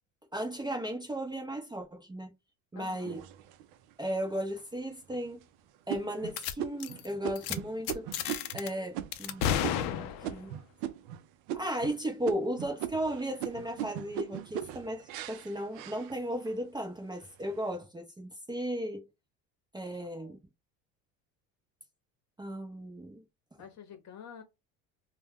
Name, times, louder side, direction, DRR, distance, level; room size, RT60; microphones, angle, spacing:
voice 1, 0.3-2.3 2.7-3.2 4.0-5.4 5.9-8.1 8.5-10.6 11.5-19.0 19.7-20.4 22.4-23.2, equal, 10° right, 0.6 m, -35 dB
voice 2, 2.7-3.1 19.9-20.4 23.6-24.4, left 8 dB, 45° left, 0.9 m, -49 dB
sound 1, 3.1-3.9 4.5-4.6 5.1-5.4 5.9-11.2 11.5-12.0 12.2-16.6 17.0-17.6, right 11 dB, 75° right, 0.5 m, -39 dB
sound 2, 6.4-6.5 6.8-7.1 7.4-7.6 7.9-8.7 9.1-10.4, left 10 dB, 60° left, 0.5 m, -32 dB
2.3 x 2.1 x 3.4 m
supercardioid pair, 95°, 39 cm